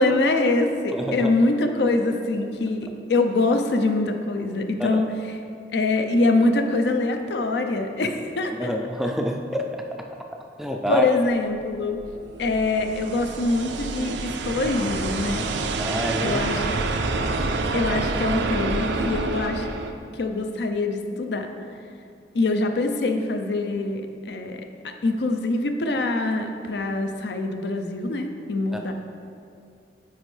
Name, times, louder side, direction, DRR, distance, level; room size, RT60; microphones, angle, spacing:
voice 1, 0.0-5.1 5.7-8.7 10.9-12.0 12.4-15.5 16.2-16.8 17.7-19.7 20.1-21.5 22.3-24.6 25.0-28.9, left 2 dB, 75° left, 5 dB, 0.5 m, -24 dB
voice 2, 0.9-1.3 4.8-5.0 8.6-9.8 10.6-11.1 15.8-16.4 17.2-17.3 28.7-28.9, equal, ahead, 2 dB, 0.3 m, -27 dB
sound 1, 11.7-19.9, right 3 dB, 90° right, 0.4 m, -28 dB
9.3 x 4.4 x 3.2 m, 2.4 s
head